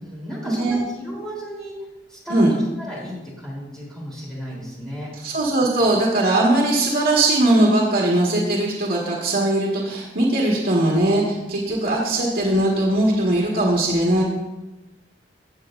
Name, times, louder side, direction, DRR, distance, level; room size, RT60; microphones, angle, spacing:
voice 1, 0.0-1.7 2.1-5.1, equal, 5° left, -7 dB, 3.6 m, -34 dB
voice 2, 5.2-14.2, right 1 dB, 70° right, -4 dB, 1.8 m, -20 dB
16.5 x 7.3 x 2.6 m, 1.0 s
head